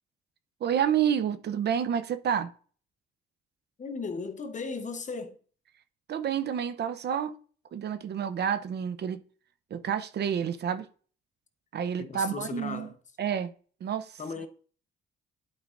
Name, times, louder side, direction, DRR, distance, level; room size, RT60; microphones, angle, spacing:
voice 1, 0.6-2.5 6.1-7.4 7.7-9.2 9.7-10.9 11.7-12.9 13.2-13.5 13.8-14.1, right 8 dB, 55° right, 0.7 m, -29 dB
voice 2, 3.8-5.4 12.0-13.0 14.2-14.5, left 4 dB, 40° left, 1.0 m, -36 dB
11.5 x 4.8 x 2.6 m
cardioid pair, 90°, 20 cm